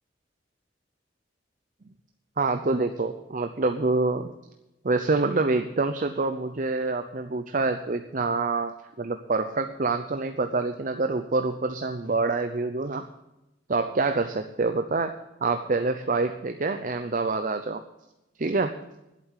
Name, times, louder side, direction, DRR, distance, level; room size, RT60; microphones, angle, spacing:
voice 1, 2.4-4.3 4.8-13.0 13.7-17.8 18.4-18.8, right 3 dB, 45° right, 8 dB, 0.7 m, -26 dB
11.5 x 8.5 x 8.4 m, 0.92 s
head